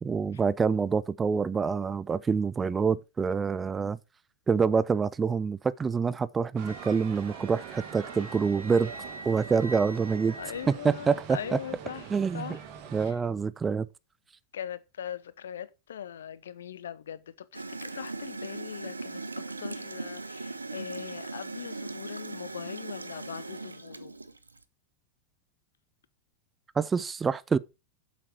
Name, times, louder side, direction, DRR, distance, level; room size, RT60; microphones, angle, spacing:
voice 1, 0.0-4.0 4.5-8.9 9.3-10.4 10.7-11.6 12.1-12.6 12.9-13.9 26.8-27.6, right 5 dB, 15° right, 0.4 m, -26 dB
Wind instrument woodwind instrument, 6.6-11.2, right 1 dB, 90° left, 0.9 m, -46 dB
sound 1, 6.6-13.1, right 8 dB, 45° right, 1.8 m, -44 dB
voice 2, 10.4-12.6 13.0-13.2 14.5-24.1, left 9 dB, 65° left, 0.7 m, -41 dB
Gurgling / Toilet flush, 17.5-24.6, right 3 dB, 80° right, 0.7 m, -39 dB
7.7 x 7.5 x 4.6 m
figure-of-eight pair, 90°, 0 cm